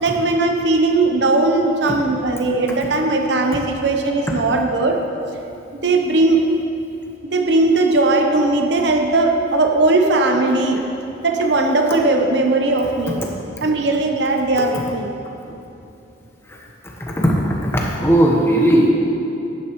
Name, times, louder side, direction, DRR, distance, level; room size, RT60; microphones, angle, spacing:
voice 1, 0.0-5.0 5.8-6.4 7.3-10.8 11.2-13.3 13.6-15.1, right 2 dB, 60° right, 3 dB, 0.8 m, -18 dB
voice 2, 17.0-18.9, right 1 dB, 15° left, -2 dB, 1.1 m, -17 dB
11.0 x 9.6 x 3.1 m, 2.7 s
head